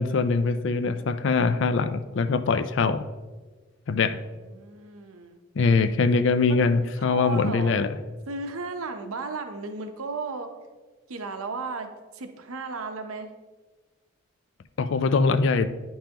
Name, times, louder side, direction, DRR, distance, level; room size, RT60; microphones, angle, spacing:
voice 1, 0.0-3.1 3.9-4.2 5.6-8.0 14.8-15.7, left 4 dB, 60° left, 12 dB, 0.4 m, -23 dB
voice 2, 4.1-5.4 6.5-6.6 7.1-7.8 8.3-10.5 11.1-11.9 12.1-13.3, right 3 dB, 80° right, 7 dB, 0.7 m, -35 dB
10.0 x 5.5 x 2.9 m, 1.3 s
head